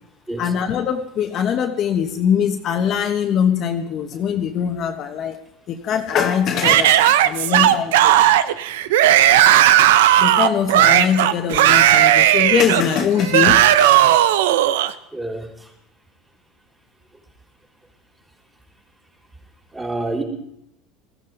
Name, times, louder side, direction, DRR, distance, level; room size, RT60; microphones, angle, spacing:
voice 1, 0.4-5.4 5.7-8.3 10.2-13.9 14.2-14.3, left 8 dB, 45° left, 4 dB, 1.3 m, -22 dB
Yell / Screaming, 6.6-14.9, right 12 dB, 85° right, 0.7 m, -15 dB
voice 2, 15.1-15.7 19.7-20.2, right 2 dB, 15° right, -2 dB, 4.4 m, -28 dB
20.0 x 15.0 x 4.0 m, 0.74 s
supercardioid pair, 110°, 0 cm